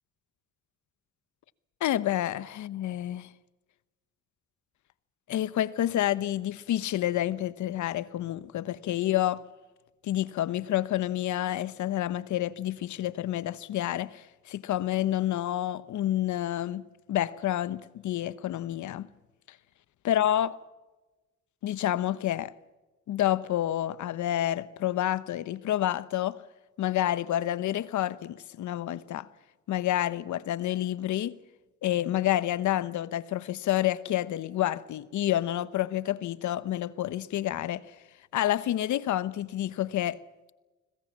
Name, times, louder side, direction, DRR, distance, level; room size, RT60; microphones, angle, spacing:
voice 1, 1.8-3.3 5.3-9.4 10.0-14.2 14.5-16.8 17.1-19.1 20.0-20.6 21.6-22.5 23.1-26.4 26.8-29.3 29.7-31.4 31.8-37.8 38.3-40.2, left 13 dB, 75° left, 1.0 m, -29 dB
26.0 x 20.0 x 7.4 m
cardioid pair, 90°, 30 cm